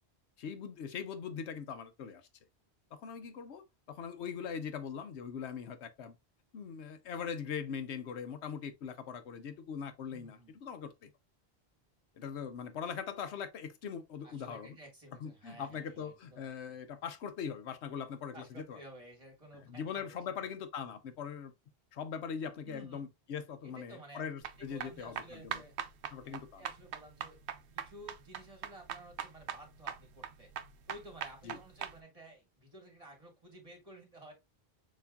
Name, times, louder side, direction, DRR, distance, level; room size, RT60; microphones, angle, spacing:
voice 1, 0.4-2.2 2.9-6.2 6.5-11.1 12.2-14.8 15.2-18.8 19.7-21.5 21.9-25.6 26.1-26.6 31.4-31.6, left 7 dB, 80° left, 1.0 m, -41 dB
voice 2, 10.1-10.5 14.2-16.8 18.3-20.5 22.6-23.1 23.6-24.3 24.6-25.8 26.2-27.4 27.7-30.5 30.9-34.3, right 1 dB, 30° right, 1.9 m, -53 dB
sound 1, 24.4-31.9, right 9 dB, 80° right, 0.9 m, -42 dB
6.9 x 3.0 x 2.3 m
omnidirectional pair, 1.1 m